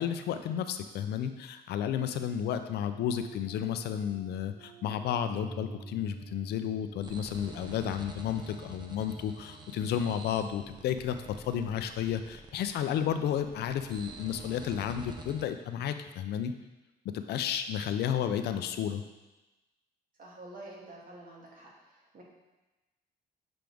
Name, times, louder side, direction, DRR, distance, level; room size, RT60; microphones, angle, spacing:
voice 1, 0.0-11.2 11.5-16.5 17.1-19.0, left 9 dB, 80° left, 9 dB, 0.6 m, -32 dB
sound 1, 2.9-10.9, right 4 dB, 70° right, 1.5 m, -50 dB
sound 2, 7.0-15.5, right 3 dB, 25° right, 0.8 m, -48 dB
voice 2, 20.2-22.2, right 2 dB, 55° right, -4 dB, 2.1 m, -49 dB
7.7 x 5.0 x 3.5 m, 1.1 s
cardioid pair, 105°, 17 cm